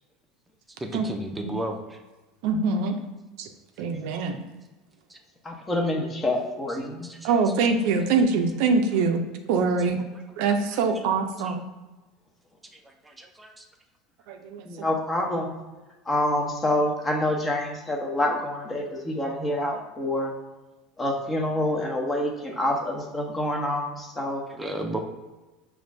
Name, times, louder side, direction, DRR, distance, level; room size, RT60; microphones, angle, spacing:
voice 1, 0.8-2.0 5.1-5.2 7.0-7.7 9.8-10.2 10.7-11.1 11.4-11.6 12.7-13.7 24.5-25.0, right 1 dB, 10° right, 3 dB, 0.6 m, -35 dB
voice 2, 2.4-3.0 3.4-3.5 3.8-4.4 7.2-9.2 9.5-10.0 10.4-11.6 14.3-14.7, right 4 dB, 70° right, 5 dB, 0.4 m, -24 dB
voice 3, 5.4-7.1 14.6-15.5 16.0-20.3 21.0-24.4, left 1 dB, 20° left, 1 dB, 0.9 m, -27 dB
5.0 x 2.5 x 3.2 m, 1.2 s
hypercardioid pair, 85°, 0 cm